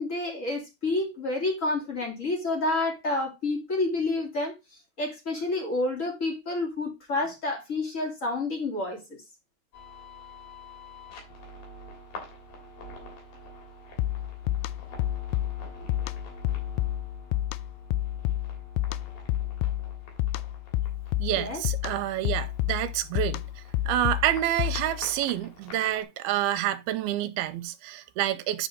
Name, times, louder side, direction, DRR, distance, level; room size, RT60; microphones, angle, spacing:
voice 1, 0.0-4.5 5.0-9.2 21.3-21.6, left 2 dB, 20° left, 2.9 m, -29 dB
sound 1, 9.7-26.0, left 1 dB, 65° left, 4.8 m, -47 dB
sound 2, 14.0-25.1, left 14 dB, 85° left, 2.6 m, -30 dB
voice 2, 21.2-23.4 23.9-28.7, right 13 dB, 85° right, 2.5 m, -28 dB
10.5 x 5.0 x 3.8 m
omnidirectional pair, 4.6 m